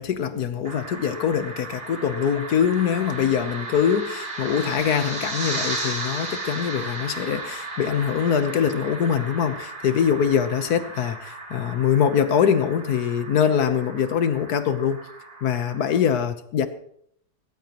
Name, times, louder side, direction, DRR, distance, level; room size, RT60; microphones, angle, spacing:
voice 1, 0.0-15.0 15.4-16.7, left 8 dB, 75° left, 10 dB, 1.6 m, -23 dB
sound 1, 0.6-16.0, right 2 dB, 85° right, 3.8 m, -35 dB
18.0 x 16.5 x 3.0 m, 0.66 s
omnidirectional pair, 1.7 m